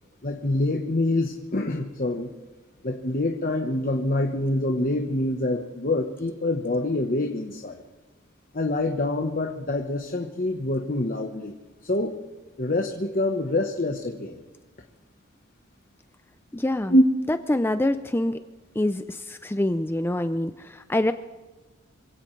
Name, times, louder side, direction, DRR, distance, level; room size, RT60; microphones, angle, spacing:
voice 1, 0.2-2.3 2.8-7.8 8.5-11.5 11.8-12.2 12.6-14.4 16.9-17.0, left 1 dB, 45° left, 3 dB, 1.1 m, -25 dB
voice 2, 16.5-16.9 17.3-18.4 18.8-21.1, left 1 dB, 10° left, 10 dB, 0.4 m, -25 dB
26.5 x 16.5 x 3.3 m, 1.3 s
head